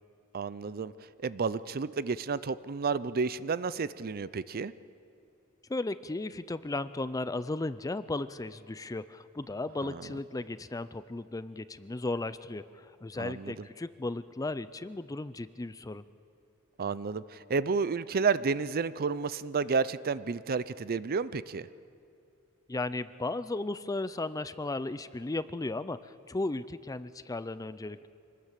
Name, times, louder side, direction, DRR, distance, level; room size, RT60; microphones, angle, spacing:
voice 1, 0.3-0.9 1.2-4.7 9.8-10.0 13.2-13.7 16.8-21.7, right 5 dB, 45° right, 16 dB, 0.5 m, -31 dB
voice 2, 5.7-16.0 22.7-28.1, left 2 dB, 15° left, 14 dB, 0.4 m, -35 dB
25.5 x 19.5 x 7.5 m, 2.5 s
head